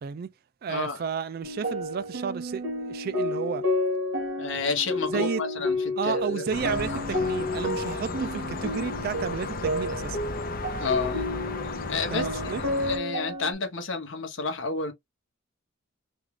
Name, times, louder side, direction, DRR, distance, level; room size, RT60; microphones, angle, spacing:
voice 1, 0.0-0.3 0.6-3.7 5.1-5.4 6.0-10.2 12.1-12.6, right 6 dB, 50° right, 0.3 m, -32 dB
voice 2, 0.7-1.0 4.4-7.0 10.8-11.2 11.9-14.9, left 4 dB, 70° left, 0.9 m, -31 dB
sound 1, 1.4-13.5, left 1 dB, 85° right, 1.5 m, -31 dB
sound 2, 6.5-13.0, left 4 dB, 45° left, 0.6 m, -34 dB
3.5 x 2.3 x 3.2 m
head